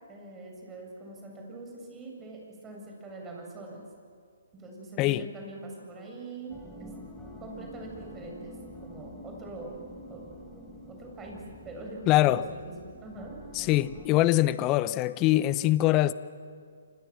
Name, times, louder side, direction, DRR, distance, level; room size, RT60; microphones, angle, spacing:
voice 1, 0.1-3.8 4.6-6.9 7.4-8.5 8.8-9.7 10.1-10.3 10.5-13.3, right 2 dB, 15° right, 1 dB, 7.6 m, -43 dB
sound 1, 6.5-14.1, left 1 dB, 5° left, 4.5 m, -47 dB
voice 2, 12.1-12.5 13.5-16.1, left 15 dB, 25° left, 16 dB, 0.9 m, -23 dB
29.5 x 26.0 x 7.6 m, 2.1 s
figure-of-eight pair, 135°, 0 cm